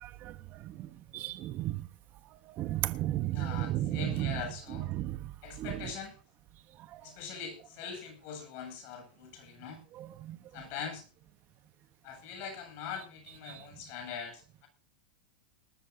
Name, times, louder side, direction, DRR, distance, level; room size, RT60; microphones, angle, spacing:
voice 1, 0.0-0.3 0.6-1.9 2.6-4.4 4.7-5.2 5.6-5.9 6.9-7.0 10.0-10.4 13.5-13.6, right 14 dB, 40° right, 1.1 m, -34 dB
voice 2, 3.3-4.9 5.4-6.1 7.0-9.8 10.5-11.0 12.0-14.7, left 7 dB, 50° left, 7.9 m, -42 dB
20.0 x 13.0 x 2.7 m
supercardioid pair, 125°, 5 cm